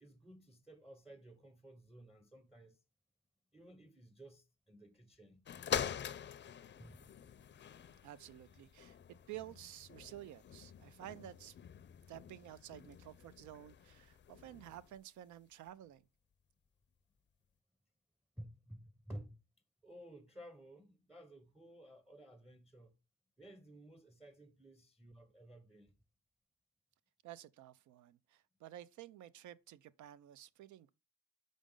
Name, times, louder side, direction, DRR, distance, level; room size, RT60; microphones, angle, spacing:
voice 1, 0.0-2.8 3.5-5.5 6.8-7.1 18.4-19.4 19.8-22.9 23.4-25.9, right 1 dB, ahead, 0.6 m, -54 dB
sound 1, 5.4-15.0 15.7-15.8, left 8 dB, 40° left, 0.5 m, -45 dB
voice 2, 8.0-9.0 9.3-11.5 12.1-16.0 27.2-30.9, right 13 dB, 75° right, 0.5 m, -52 dB
5.1 x 5.1 x 3.7 m
cardioid pair, 90°, 30 cm